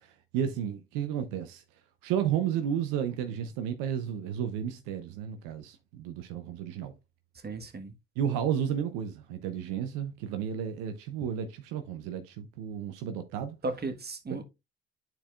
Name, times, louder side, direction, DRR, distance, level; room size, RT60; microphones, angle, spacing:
voice 1, 0.3-1.6 2.0-6.9 8.2-13.6, right 9 dB, 75° right, 0.7 m, -32 dB
voice 2, 7.4-7.9 13.6-14.4, right 2 dB, 30° right, 1.4 m, -35 dB
9.8 x 4.5 x 2.3 m
hypercardioid pair, 50°, 32 cm